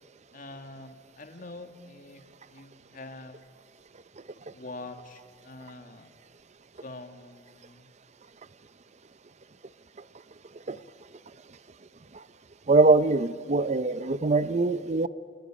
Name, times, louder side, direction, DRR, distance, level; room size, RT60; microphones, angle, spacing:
voice 1, 0.3-2.2 2.5-3.4 4.5-6.1 6.8-7.9, left 2 dB, 50° left, 7 dB, 2.1 m, -44 dB
voice 2, 12.7-15.1, right 3 dB, 40° right, 15 dB, 0.6 m, -22 dB
29.0 x 23.0 x 8.9 m, 2.1 s
head